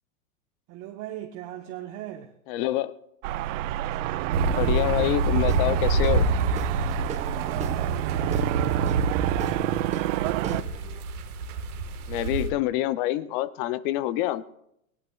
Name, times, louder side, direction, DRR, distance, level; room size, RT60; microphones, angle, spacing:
voice 1, 0.7-2.3 7.4-8.7, right 12 dB, 35° right, 0.8 m, -40 dB
voice 2, 2.5-2.9 4.5-6.3 12.1-14.4, left 14 dB, 40° left, 0.5 m, -26 dB
sound 1, 3.2-10.6, right 16 dB, 60° right, 0.5 m, -29 dB
sound 2, 4.3-12.5, right 3 dB, 80° right, 1.5 m, -27 dB
Guitar / Drum, 5.4-11.0, right 4 dB, 15° right, 1.1 m, -38 dB
19.0 x 17.0 x 2.3 m
supercardioid pair, 135°, 43 cm